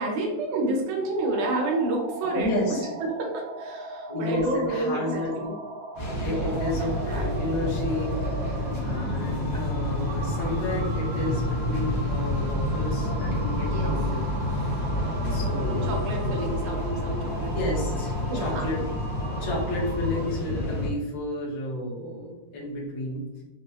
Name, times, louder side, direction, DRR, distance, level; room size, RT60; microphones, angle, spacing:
voice 1, 0.0-5.5 6.3-7.3 13.6-13.9 15.7-17.8 18.3-18.7, right 2 dB, 90° right, 0 dB, 2.4 m, -30 dB
sound 1, 1.0-20.3, right 1 dB, 65° right, 1.4 m, -37 dB
voice 2, 2.3-2.9 4.1-5.4 6.2-14.2 15.3-15.9 16.2-16.4 17.5-18.8 19.4-23.2, left 1 dB, 55° left, -4 dB, 1.4 m, -32 dB
sound 2, 5.9-20.9, left 1 dB, 75° left, 1.0 m, -29 dB
6.0 x 2.0 x 2.8 m, 1.1 s
omnidirectional pair, 3.5 m